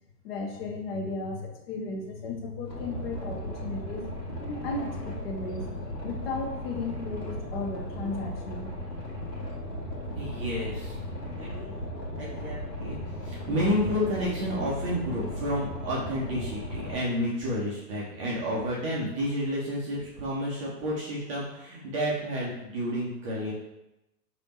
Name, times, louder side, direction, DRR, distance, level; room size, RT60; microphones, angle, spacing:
voice 1, 0.2-4.1 4.4-5.7 6.0-8.7, left 3 dB, 35° left, 2 dB, 0.7 m, -35 dB
Boat Water vehicle, 2.7-16.9, left 1 dB, 80° left, 1.3 m, -36 dB
voice 2, 10.2-11.0 11.4-11.9 12.2-23.5, equal, 20° right, -6 dB, 0.5 m, -30 dB
3.3 x 2.7 x 4.1 m, 0.91 s
figure-of-eight pair, 115°, 49 cm